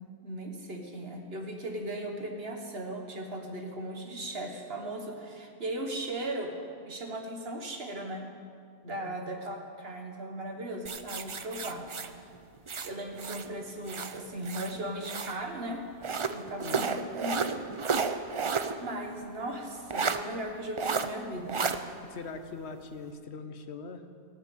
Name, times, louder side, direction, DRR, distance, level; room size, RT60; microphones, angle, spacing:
voice 1, 0.2-6.5 6.8-8.2 8.8-11.9 12.8-15.8 16.3-17.9 18.8-21.6, right 1 dB, 65° right, 3 dB, 1.6 m, -37 dB
voice 2, 8.8-9.3 16.6-16.8 22.0-24.1, left 4 dB, 75° left, 8 dB, 1.2 m, -42 dB
sound 1, 10.9-13.5 13.8-15.4 16.0-18.8 19.1-19.2 19.9-20.2 20.8-21.1 21.5-21.8, right 5 dB, 40° right, 0.5 m, -32 dB
17.5 x 7.2 x 8.5 m, 2.3 s
omnidirectional pair, 1.1 m